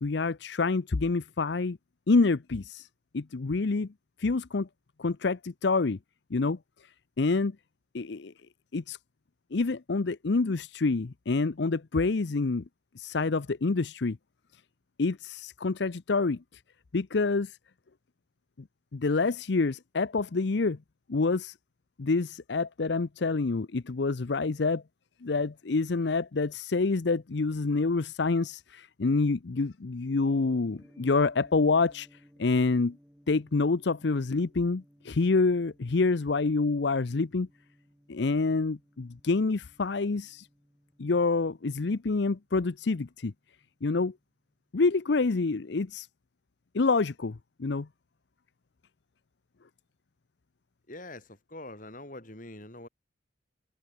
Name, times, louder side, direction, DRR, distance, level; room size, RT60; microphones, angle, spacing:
voice 1, 0.0-1.8 2.1-2.9 3.1-3.9 4.2-4.7 5.0-6.0 6.3-6.6 7.2-7.5 7.9-8.3 8.7-9.0 9.5-12.6 13.0-14.2 15.0-16.4 16.9-17.6 18.9-20.8 21.1-21.5 22.0-24.8 25.2-32.1 32.4-33.0 33.3-37.5 38.1-40.5 41.0-43.3 43.8-44.1 44.7-46.1 46.7-47.9, left 3 dB, 60° left, 0.6 m, -27 dB
Gong, 30.2-44.3, equal, 5° right, 4.8 m, -61 dB
voice 2, 50.9-52.9, left 1 dB, 40° left, 4.2 m, -44 dB
head